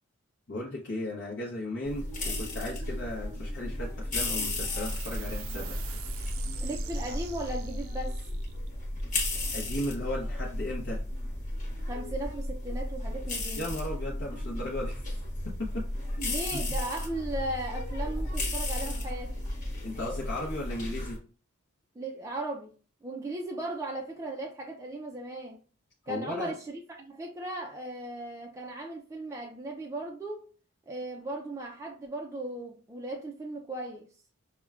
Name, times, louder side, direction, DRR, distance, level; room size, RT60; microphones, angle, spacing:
voice 1, 0.5-5.8 9.5-11.0 13.6-15.0 15.4-15.8 16.2-16.6 19.8-21.2 26.0-26.5, left 1 dB, 55° left, 0.7 m, -36 dB
sound 1, 1.8-21.2, left 1 dB, 40° left, 1.0 m, -34 dB
sound 2, 4.8-11.7, right 7 dB, 85° right, 0.5 m, -46 dB
voice 2, 6.6-8.2 11.9-13.7 16.3-19.4 22.0-22.7 23.0-25.6 26.1-30.5 30.9-34.1, right 1 dB, 15° right, 0.3 m, -37 dB
5.7 x 2.2 x 2.3 m
head